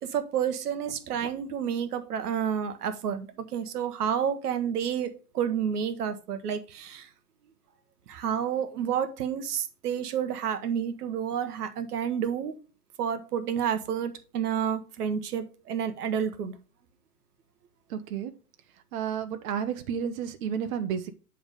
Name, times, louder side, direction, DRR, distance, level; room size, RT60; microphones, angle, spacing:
voice 1, 0.0-7.1 8.1-12.6 13.0-16.5, right 8 dB, 85° right, 1.1 m, -30 dB
voice 2, 17.9-18.3 18.9-21.1, right 8 dB, 60° right, 0.9 m, -31 dB
8.8 x 3.6 x 5.0 m
hypercardioid pair, 140°, 46 cm